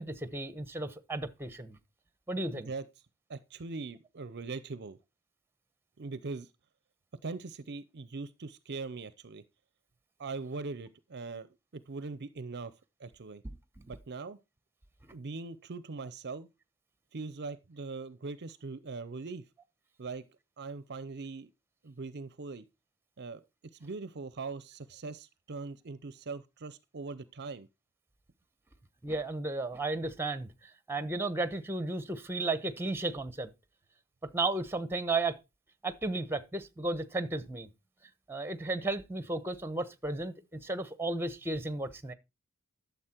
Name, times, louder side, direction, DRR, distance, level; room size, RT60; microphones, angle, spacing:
voice 1, 0.0-1.8 2.3-2.7 13.4-13.5 13.8-13.9 15.1-15.2 29.0-33.5 34.3-35.4 35.8-37.7 38.3-42.1, right 2 dB, 10° right, 1.1 m, -34 dB
voice 2, 2.5-2.8 3.3-5.0 6.0-6.5 7.2-9.4 10.2-12.7 13.0-13.4 13.9-14.4 15.1-16.5 17.1-19.4 20.0-20.2 20.6-21.5 21.8-22.7 23.2-23.4 23.8-27.7, right 4 dB, 50° right, 0.7 m, -41 dB
12.5 x 7.1 x 4.5 m
head